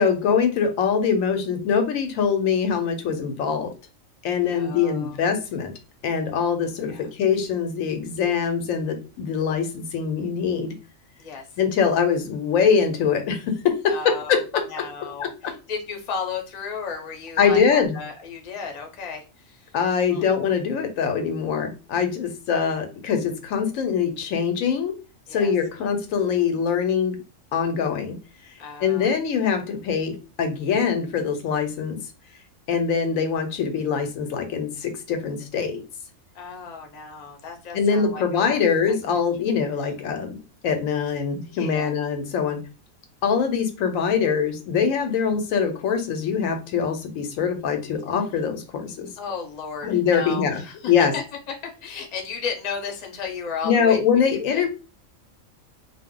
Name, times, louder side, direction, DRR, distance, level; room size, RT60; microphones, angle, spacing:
voice 1, 0.0-3.7 4.2-5.7 6.0-10.7 11.6-14.6 15.2-15.5 17.4-17.9 19.7-25.0 25.3-27.2 27.5-28.2 28.8-32.0 32.7-35.8 37.7-40.4 40.6-42.6 43.2-49.1 49.8-50.6 50.9-51.1 53.6-54.7, left 6 dB, 85° left, 6 dB, 1.0 m, -23 dB
voice 2, 4.5-5.2 6.9-7.1 11.2-11.5 13.9-14.4 14.7-19.8 20.1-20.2 25.3-25.5 28.6-29.1 36.3-38.6 38.9-39.2 41.5-41.9 49.2-51.5 51.8-54.0 54.3-54.6, left 5 dB, 40° left, 2 dB, 0.6 m, -34 dB
2.4 x 2.1 x 3.6 m, 0.31 s
omnidirectional pair, 1.4 m